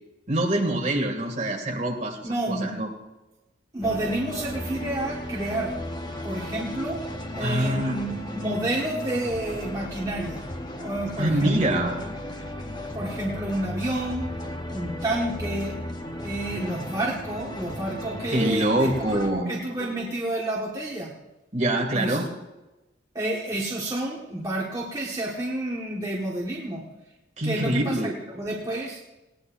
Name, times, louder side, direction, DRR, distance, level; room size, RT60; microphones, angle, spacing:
voice 1, 0.3-2.9 7.4-8.0 11.2-11.9 18.3-19.5 21.5-22.3 27.4-28.2, right 1 dB, 35° right, 1 dB, 2.3 m, -25 dB
voice 2, 2.2-2.7 3.7-5.7 6.2-7.1 7.3-10.4 10.8-11.9 12.9-14.3 14.7-15.8 16.2-21.1 21.9-22.2 23.1-26.8 27.4-29.0, right 1 dB, 20° right, -4 dB, 1.6 m, -30 dB
sound 1, 3.8-19.3, left 1 dB, 20° left, 1.0 m, -35 dB
19.5 x 17.5 x 2.6 m, 1.0 s
head